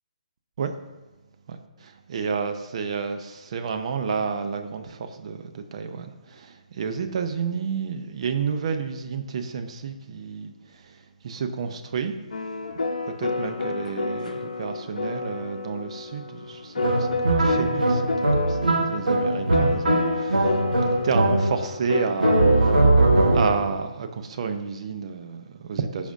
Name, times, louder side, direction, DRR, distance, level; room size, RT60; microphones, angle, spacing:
voice 1, 1.5-12.1 13.2-22.9 23.3-26.1, right 6 dB, 45° right, 7 dB, 0.6 m, -31 dB
sound 1, 12.3-22.9, left 3 dB, 65° left, 0.8 m, -29 dB
sound 2, 16.8-21.8 22.2-23.7, right 2 dB, 85° right, 1.3 m, -21 dB
14.0 x 5.0 x 2.6 m, 1.2 s
figure-of-eight pair, 140°, 4 cm